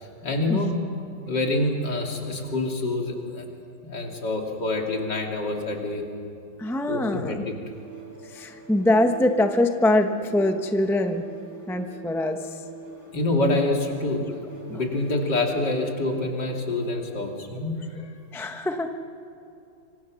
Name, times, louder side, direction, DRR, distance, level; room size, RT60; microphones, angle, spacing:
voice 1, 0.2-0.7 1.3-3.4 3.8-6.0 6.9-7.5 13.1-14.2 14.7-17.8, left 2 dB, 60° left, 1 dB, 3.4 m, -26 dB
voice 2, 6.6-7.4 8.4-11.2 11.7-12.4 14.7-14.8 18.3-18.9, left 1 dB, ahead, 5 dB, 0.7 m, -23 dB
sound 1, 7.5-15.9, right 4 dB, 50° right, 4.3 m, -43 dB
26.5 x 25.0 x 6.4 m, 2.7 s
omnidirectional pair, 2.1 m